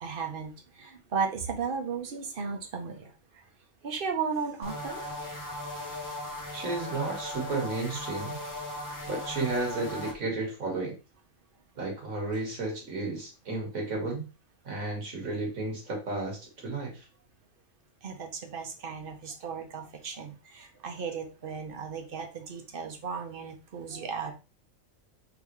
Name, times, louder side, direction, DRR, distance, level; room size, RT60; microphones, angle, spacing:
voice 1, 0.0-3.1 3.8-5.0 18.0-24.3, right 5 dB, 50° right, 5 dB, 0.8 m, -35 dB
sound 1, 4.6-10.1, left 1 dB, 25° left, 0.4 m, -38 dB
voice 2, 6.5-8.4 9.1-11.0 11.8-14.3 14.6-17.1, right 2 dB, 75° right, 0 dB, 1.9 m, -33 dB
4.0 x 3.4 x 3.0 m, 0.31 s
omnidirectional pair, 1.4 m